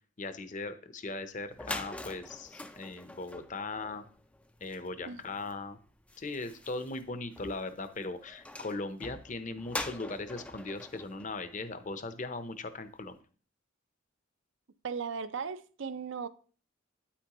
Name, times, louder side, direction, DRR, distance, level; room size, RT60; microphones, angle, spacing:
voice 1, 0.2-4.0 4.6-5.8 6.2-13.2, left 3 dB, 35° left, 0.7 m, -39 dB
sound 1, 1.2-1.3 1.5-12.3, left 1 dB, 5° left, 0.4 m, -45 dB
voice 2, 14.8-16.3, right 6 dB, 60° right, 0.5 m, -37 dB
9.9 x 8.5 x 3.0 m
head